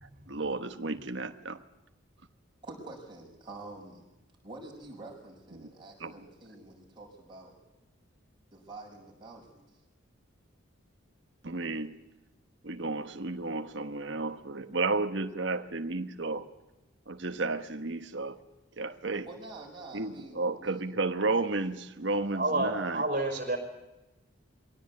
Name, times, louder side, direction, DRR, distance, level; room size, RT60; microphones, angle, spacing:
voice 1, 0.0-1.6 5.5-5.7 6.0-6.1 11.4-12.0 12.6-16.5 17.1-18.4 18.8-19.3 19.9-23.0, right 3 dB, 60° right, 7 dB, 1.2 m, -32 dB
voice 2, 2.6-4.0 4.4-7.5 8.5-9.7 19.2-20.8, right 2 dB, 25° right, -1 dB, 6.6 m, -47 dB
voice 3, 22.3-23.6, right 2 dB, 40° right, 3 dB, 5.1 m, -29 dB
22.5 x 17.5 x 8.5 m, 1.0 s
head